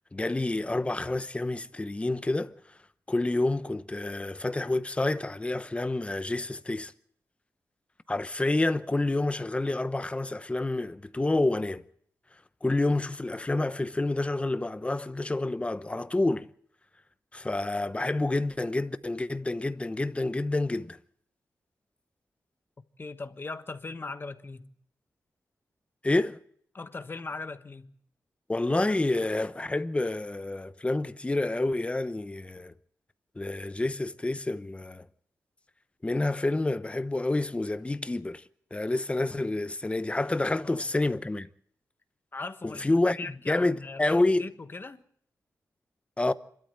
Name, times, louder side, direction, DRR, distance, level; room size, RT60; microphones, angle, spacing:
voice 1, 0.1-2.5 3.1-6.9 8.1-11.8 12.6-16.5 17.3-21.0 26.0-26.4 28.5-32.7 33.4-35.0 36.0-38.4 38.7-41.5 42.6-43.2 43.5-44.5 46.2-46.3, left 2 dB, 20° left, 0.9 m, -28 dB
voice 2, 23.0-24.7 26.7-27.9 40.6-40.9 42.3-45.0, left 3 dB, 35° left, 1.3 m, -39 dB
27.5 x 13.0 x 7.9 m
wide cardioid pair, 100°, 6 cm